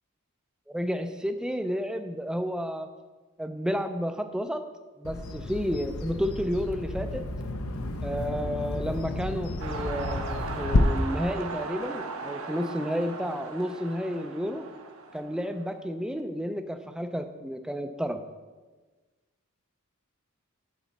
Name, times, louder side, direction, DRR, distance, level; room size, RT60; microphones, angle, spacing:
voice 1, 0.7-2.9 3.4-4.7 5.0-7.3 8.0-14.7 15.1-18.2, equal, 5° right, 8 dB, 0.4 m, -31 dB
Bird vocalization bird call bird song, 5.0-10.8, left 2 dB, 70° left, 0.7 m, -31 dB
sound 1, 9.6-15.8, right 3 dB, 65° right, 0.9 m, -38 dB
9.1 x 4.2 x 7.1 m, 1.3 s
head